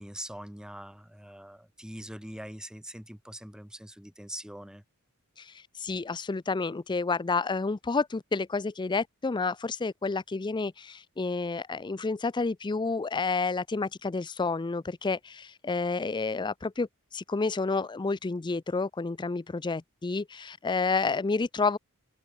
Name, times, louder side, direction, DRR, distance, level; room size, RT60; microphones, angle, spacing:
voice 1, 0.0-4.8, right 1 dB, 5° right, 1.6 m, -43 dB
voice 2, 5.4-16.9 17.1-21.8, left 4 dB, 20° left, 0.4 m, -30 dB
open air
head